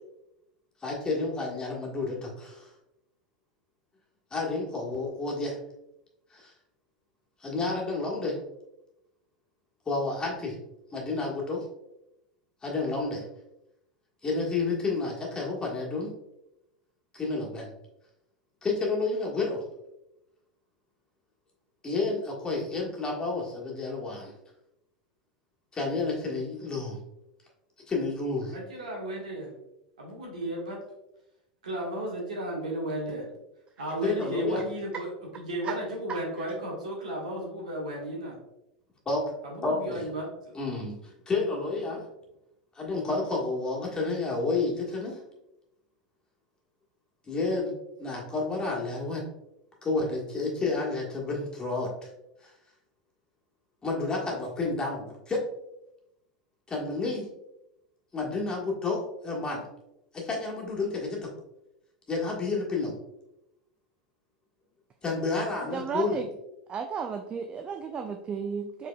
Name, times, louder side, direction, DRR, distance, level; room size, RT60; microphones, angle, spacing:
voice 1, 0.8-2.7 4.3-5.6 6.3-6.5 7.4-8.4 9.9-10.6 10.9-11.6 12.6-13.2 14.2-16.1 17.1-17.7 18.6-19.6 21.8-24.3 25.7-27.0 27.9-28.6 34.0-34.6 39.0-39.2 39.6-40.1 40.5-42.0 42.7-45.2 47.3-47.7 48.0-49.2 49.8-52.1 52.4-52.5 53.8-55.4 56.7-57.3 58.1-59.6 60.1-61.3 62.1-62.9 65.0-66.2, left 3 dB, 20° left, -3 dB, 1.5 m, -30 dB
voice 2, 28.5-29.5 30.0-30.8 31.6-33.3 33.8-35.1 35.4-38.4 39.4-40.5, right 1 dB, 80° right, -2 dB, 1.5 m, -34 dB
voice 3, 65.7-66.3 66.7-68.9, right 6 dB, 30° right, 5 dB, 0.4 m, -33 dB
4.9 x 4.0 x 2.3 m, 0.87 s
hypercardioid pair, 85°, 4 cm